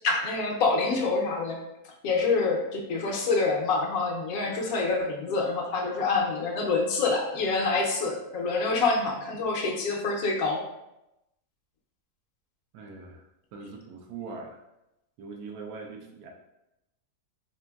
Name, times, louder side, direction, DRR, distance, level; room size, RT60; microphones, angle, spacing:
voice 1, 0.0-1.6 2.0-10.6, left 3 dB, 70° left, 0 dB, 1.1 m, -26 dB
voice 2, 12.7-13.2 13.5-14.6 15.2-16.3, right 4 dB, 85° right, 1 dB, 1.1 m, -41 dB
3.8 x 3.4 x 2.2 m, 0.90 s
omnidirectional pair, 1.6 m